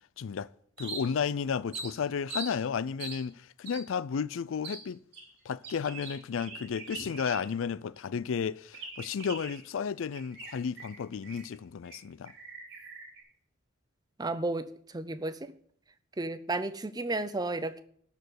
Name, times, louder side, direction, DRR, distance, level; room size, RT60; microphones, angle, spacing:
voice 1, 0.2-0.5 0.8-5.0 5.5-12.3, left 6 dB, 70° left, 0.4 m, -33 dB
sound 1, 0.8-1.3 1.7-2.5 3.0-3.2 3.7-3.8 4.6-4.8 5.1-7.7 8.0-8.1 8.7-9.7 10.1-11.5 11.8-12.0 12.3-13.2, right 3 dB, 55° right, 3.5 m, -42 dB
voice 2, 14.2-14.7 14.9-15.5 16.2-17.8, right 2 dB, 20° right, 0.5 m, -32 dB
12.5 x 4.6 x 8.0 m
head